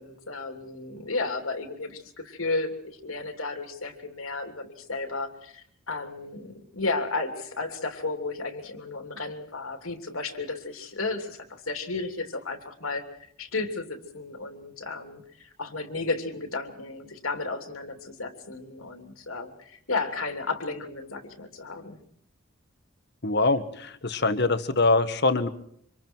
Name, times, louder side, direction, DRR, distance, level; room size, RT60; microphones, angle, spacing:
voice 1, 0.0-13.0 13.4-22.0, left 3 dB, 85° left, 6 dB, 3.0 m, -33 dB
voice 2, 23.2-25.5, left 3 dB, 55° left, 10 dB, 1.5 m, -23 dB
27.0 x 26.0 x 4.6 m, 0.66 s
head